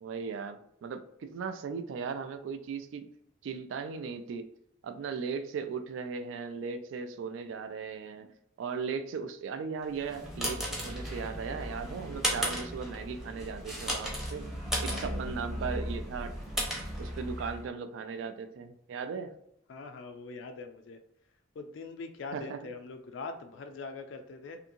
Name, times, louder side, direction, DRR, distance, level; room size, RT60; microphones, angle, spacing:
voice 1, 0.0-3.0 3.4-4.5 4.8-8.3 8.6-14.5 14.8-16.3 17.0-19.3 22.3-22.6, right 5 dB, 75° right, 9 dB, 0.3 m, -37 dB
sound 1, 9.9-17.7, equal, ahead, 0.6 m, -35 dB
voice 2, 14.9-15.3 19.7-21.0 21.6-24.6, left 3 dB, 70° left, 6 dB, 0.3 m, -42 dB
2.7 x 2.6 x 2.6 m, 0.74 s
head